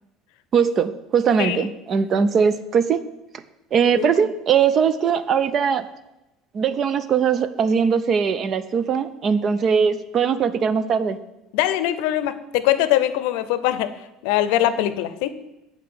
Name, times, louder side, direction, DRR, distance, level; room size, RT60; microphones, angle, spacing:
voice 1, 0.5-3.0 3.7-5.9 6.5-11.2, right 6 dB, 35° right, 14 dB, 0.5 m, -20 dB
voice 2, 1.4-1.7 4.0-4.1 11.5-13.9 14.2-15.3, left 13 dB, 85° left, 13 dB, 0.6 m, -22 dB
7.7 x 4.6 x 6.8 m, 0.95 s
cardioid pair, 150°, 0 cm